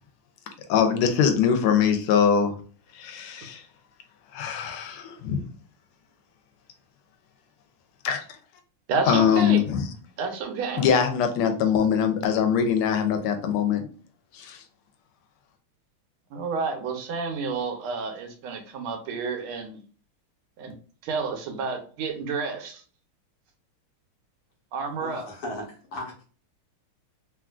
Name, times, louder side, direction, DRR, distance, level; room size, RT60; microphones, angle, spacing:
voice 1, 0.7-2.5 2.9-3.6 4.3-5.4 8.0-8.2 9.1-9.8 10.8-13.8 14.3-14.6, left 7 dB, 85° left, 6 dB, 1.5 m, -22 dB
voice 2, 8.9-9.6 10.2-10.8 16.3-19.8 20.6-20.8 21.0-22.8 24.7-25.3, right 4 dB, 80° right, 4 dB, 1.5 m, -30 dB
voice 3, 25.0-26.2, left 1 dB, 55° left, 0 dB, 1.2 m, -36 dB
3.5 x 2.5 x 2.3 m, 0.41 s
omnidirectional pair, 2.4 m